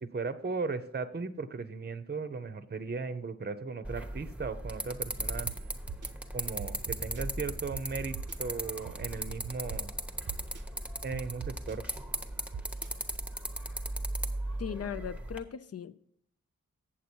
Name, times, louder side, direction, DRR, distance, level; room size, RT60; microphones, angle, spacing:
voice 1, 0.0-5.5 6.3-9.9 11.0-11.8, right 4 dB, 35° right, 0.7 m, -37 dB
sound 1, 3.8-15.4, right 1 dB, 5° right, 0.9 m, -37 dB
sound 2, 5.5-5.6 5.9-6.1 6.6-7.2 7.7-7.8 8.1-8.3 8.8-9.8 10.3-10.6 11.1-11.7 12.5-12.9, right 8 dB, 85° right, 0.6 m, -41 dB
voice 2, 14.6-16.0, left 8 dB, 55° left, 0.5 m, -38 dB
8.3 x 7.3 x 4.4 m
wide cardioid pair, 75°, 30 cm